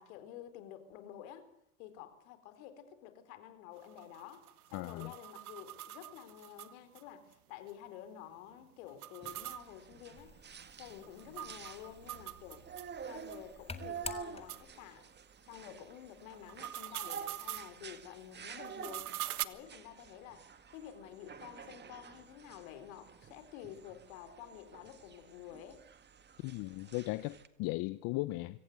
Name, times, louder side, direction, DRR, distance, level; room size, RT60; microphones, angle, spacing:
voice 1, 0.0-1.5 1.8-10.3 10.8-12.7 13.0-15.1 15.5-19.1 19.4-25.8, left 10 dB, 65° left, 4.1 m, -50 dB
sound 1, 3.8-7.0 7.3-7.4 7.7-7.8 8.9-12.9 13.3-13.4 14.0-14.1 14.5-14.6 16.3-17.7 18.6-19.4, right 14 dB, 80° right, 1.4 m, -44 dB
voice 2, 4.7-5.1 26.4-28.6, left 20 dB, 50° left, 0.9 m, -37 dB
sound 2, 9.2-27.5, right 7 dB, 25° right, 1.8 m, -50 dB
sound 3, 10.2-14.9, left 4 dB, 15° left, 2.0 m, -50 dB
24.5 x 17.5 x 8.0 m
hypercardioid pair, 105°, 43 cm